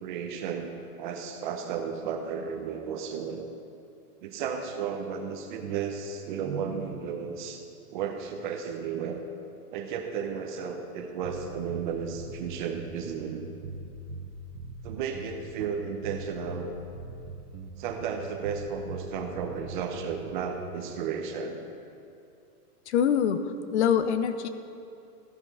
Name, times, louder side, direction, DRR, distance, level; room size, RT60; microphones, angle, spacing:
voice 1, 0.0-3.5 4.2-7.6 7.9-9.2 9.7-13.4 14.8-16.7 17.8-21.6, right 6 dB, 30° right, 4 dB, 0.8 m, -33 dB
sound 1, 11.2-20.8, right 4 dB, 85° right, 1.2 m, -41 dB
voice 2, 22.9-23.4 23.7-24.5, left 8 dB, 45° left, 10 dB, 0.7 m, -24 dB
14.0 x 5.1 x 4.8 m, 2.6 s
hypercardioid pair, 165°, 46 cm